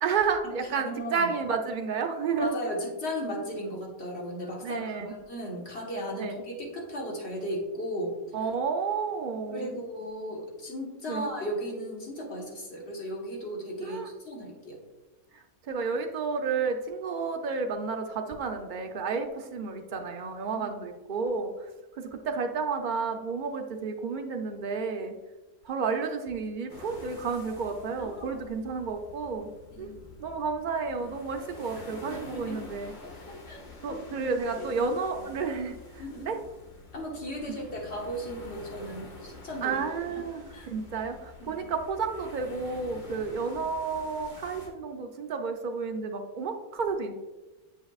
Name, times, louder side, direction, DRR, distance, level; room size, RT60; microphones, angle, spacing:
voice 1, 0.0-2.6 4.6-5.1 6.2-6.4 8.3-9.7 11.1-11.2 13.8-14.1 15.3-25.1 25.6-29.5 29.8-29.9 30.2-32.9 33.8-36.4 39.6-47.1, right 5 dB, 60° right, 4 dB, 0.5 m, -31 dB
voice 2, 0.7-1.3 2.4-8.2 9.5-14.8 20.5-20.7 28.0-28.4 29.7-30.1 31.9-32.6 33.0-34.2 36.0-36.3 36.9-39.8 40.1-40.2 40.5-40.7 41.4-41.6, equal, 50° left, -2 dB, 1.5 m, -36 dB
sound 1, 26.7-44.7, left 3 dB, 90° left, 1.8 m, -48 dB
8.0 x 5.5 x 2.4 m, 1.1 s
omnidirectional pair, 1.5 m